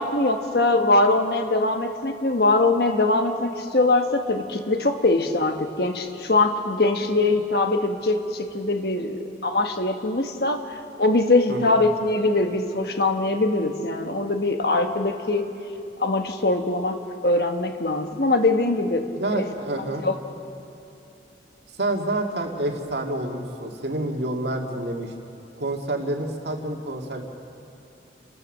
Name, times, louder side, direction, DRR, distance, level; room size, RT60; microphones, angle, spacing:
voice 1, 0.0-15.5 16.0-17.0 17.2-19.1 19.4-19.5 20.0-20.2, left 2 dB, 60° left, 5 dB, 1.4 m, -22 dB
voice 2, 11.5-11.8 19.2-20.1 21.7-25.1 25.5-27.2, right 1 dB, 70° right, 2 dB, 2.1 m, -28 dB
30.0 x 13.5 x 6.6 m, 2.8 s
head